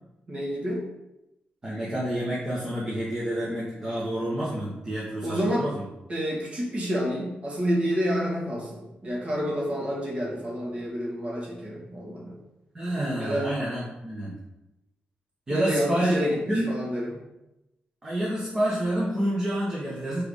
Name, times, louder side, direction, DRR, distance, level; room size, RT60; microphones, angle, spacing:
voice 1, 0.3-0.8 5.2-5.7 6.1-12.4 13.2-13.5 15.5-17.2, equal, 40° right, -4 dB, 2.2 m, -29 dB
voice 2, 1.6-5.8 12.7-14.4 15.5-16.1 16.5-16.7 18.0-20.2, right 1 dB, 20° right, -7 dB, 1.4 m, -28 dB
5.0 x 4.9 x 5.0 m, 0.95 s
wide cardioid pair, 155°, 3 cm